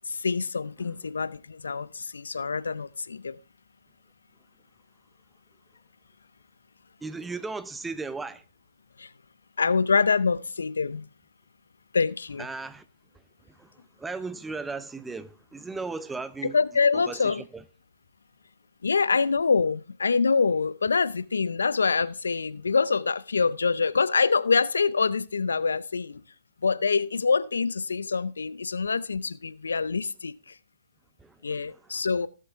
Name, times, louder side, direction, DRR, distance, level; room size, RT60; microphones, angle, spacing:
voice 1, 0.1-3.4 9.0-9.1 9.6-11.1 11.9-12.4 16.5-17.4 18.8-26.2 26.6-30.5 31.4-32.3, left 5 dB, 85° left, 0.5 m, -25 dB
voice 2, 7.0-8.4 12.4-12.8 13.1-16.6 16.9-17.6 31.2-31.7, right 3 dB, 10° right, 0.7 m, -37 dB
16.5 x 7.6 x 3.5 m
hypercardioid pair, 130°, 0 cm